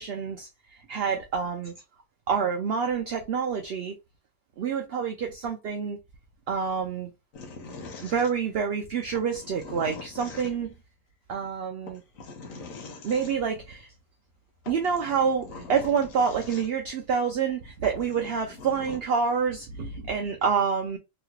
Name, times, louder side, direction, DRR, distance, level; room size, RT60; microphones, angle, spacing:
voice 1, 0.0-1.7 2.3-3.9 4.6-6.0 6.5-7.1 8.0-10.7 11.3-12.0 13.0-13.9 14.7-21.0, right 6 dB, 60° right, 0.7 m, -27 dB
sound 1, 7.3-8.7 9.1-10.8 11.9-13.4 14.3-14.4 14.6-16.9 17.5-17.6 17.8-19.0, left 3 dB, 90° left, 1.2 m, -43 dB
3.2 x 2.9 x 2.2 m
omnidirectional pair, 1.4 m